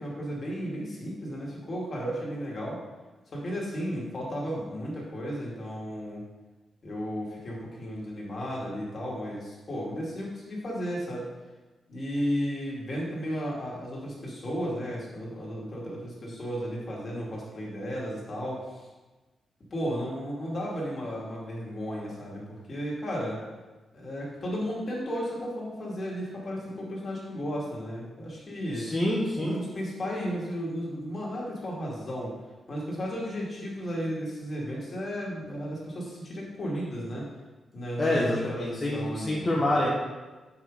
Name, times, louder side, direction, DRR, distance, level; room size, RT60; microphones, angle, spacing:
voice 1, 0.0-2.8 3.3-6.2 6.8-11.3 11.9-18.8 19.7-23.4 23.9-28.9 29.4-32.3 32.7-37.3 37.7-39.6, equal, 35° left, -4 dB, 2.5 m, -34 dB
voice 2, 28.8-29.6 38.0-39.9, left 1 dB, 20° left, -5 dB, 1.2 m, -27 dB
7.0 x 5.9 x 5.0 m, 1.2 s
wide cardioid pair, 145°, 0 cm